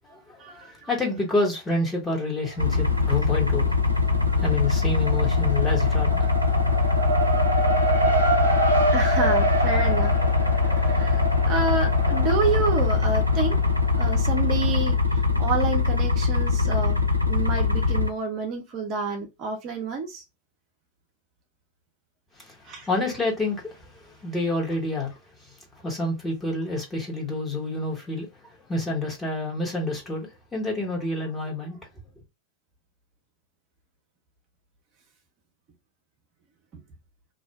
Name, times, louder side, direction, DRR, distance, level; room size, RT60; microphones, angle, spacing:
voice 1, 0.0-3.7 4.4-6.3 22.4-22.6 22.9-25.2 25.8-28.3 28.7-31.8, left 2 dB, 10° left, 1.1 m, -28 dB
Race car auto racing, 2.4-3.2 3.5-14.8, right 2 dB, 85° left, 0.8 m, -28 dB
sound 1, 2.6-18.1, left 4 dB, 85° right, 0.4 m, -22 dB
voice 2, 8.9-10.1 10.6-13.6 14.0-15.0 15.4-17.0 17.3-20.2 22.7-22.9, right 4 dB, 35° right, 0.6 m, -28 dB
2.6 x 2.1 x 3.4 m
figure-of-eight pair, 90°, 0 cm